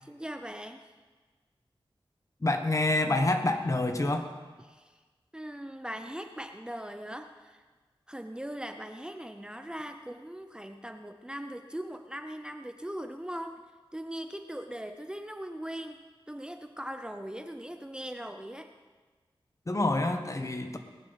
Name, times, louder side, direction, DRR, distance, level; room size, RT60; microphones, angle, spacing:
voice 1, 0.0-0.9 4.7-5.0 5.3-7.6 8.1-13.6 13.9-16.0 16.3-18.7, equal, 10° right, 7 dB, 0.6 m, -40 dB
voice 2, 2.4-4.3 19.7-20.8, left 2 dB, 35° left, 6 dB, 1.2 m, -27 dB
19.0 x 11.0 x 4.1 m, 1.4 s
wide cardioid pair, 75°, 9 cm